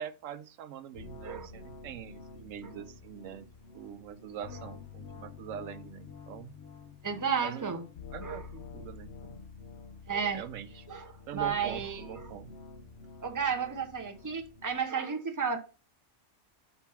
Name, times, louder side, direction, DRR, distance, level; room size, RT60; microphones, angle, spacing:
voice 1, 0.0-3.4 3.7-6.5 7.4-7.7 8.1-9.4 10.3-10.9 11.3-12.5, right 9 dB, 80° right, 1.0 m, -43 dB
sound 1, 0.9-14.8, left 4 dB, 60° left, 1.0 m, -48 dB
voice 2, 7.0-7.8 8.2-8.4 10.1-10.4 10.9-12.4 13.2-15.6, right 6 dB, 15° right, 0.8 m, -33 dB
5.5 x 4.4 x 5.8 m
omnidirectional pair, 1.3 m